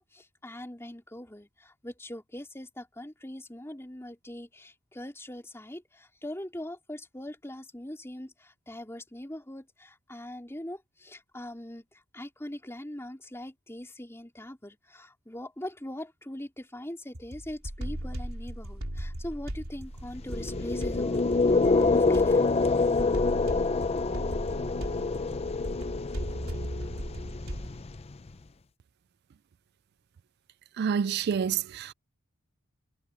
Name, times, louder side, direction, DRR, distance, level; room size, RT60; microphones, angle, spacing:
voice 1, 0.0-21.2 21.9-22.4, left 1 dB, 10° left, 3.6 m, -42 dB
sound 1, 17.1-27.8, equal, 70° right, 3.6 m, -37 dB
sound 2, 20.2-28.3, left 3 dB, 25° left, 0.5 m, -26 dB
voice 2, 30.8-31.9, right 7 dB, 45° right, 0.3 m, -28 dB
head